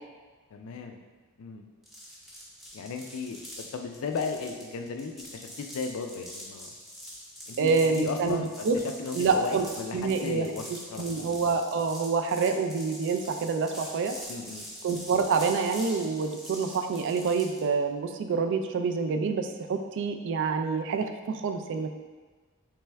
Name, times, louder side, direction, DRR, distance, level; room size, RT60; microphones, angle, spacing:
voice 1, 0.5-1.0 1.4-1.6 2.7-6.7 7.5-11.3 14.3-14.7, left 4 dB, 65° left, 5 dB, 0.4 m, -35 dB
sound 1, 1.8-17.7, equal, ahead, 0.6 m, -44 dB
voice 2, 7.6-8.8 9.1-9.7 9.9-10.5 11.0-14.2 14.8-22.0, right 5 dB, 55° right, 6 dB, 0.3 m, -27 dB
3.3 x 3.3 x 3.2 m, 1.4 s
head